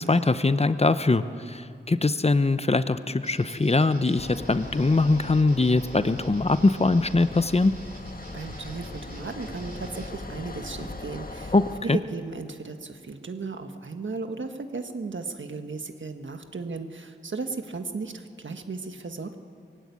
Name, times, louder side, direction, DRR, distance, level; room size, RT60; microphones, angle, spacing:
voice 1, 0.0-7.7 11.5-12.0, left 3 dB, 30° left, 12 dB, 0.8 m, -22 dB
sound 1, 3.2-10.1, right 2 dB, 50° right, 3.2 m, -48 dB
sound 2, 4.2-11.8, left 2 dB, 50° left, 1.7 m, -40 dB
voice 2, 8.3-11.5 11.8-19.4, right 4 dB, 75° right, 7 dB, 1.5 m, -35 dB
21.5 x 16.0 x 9.7 m, 2.4 s
wide cardioid pair, 70°, 20 cm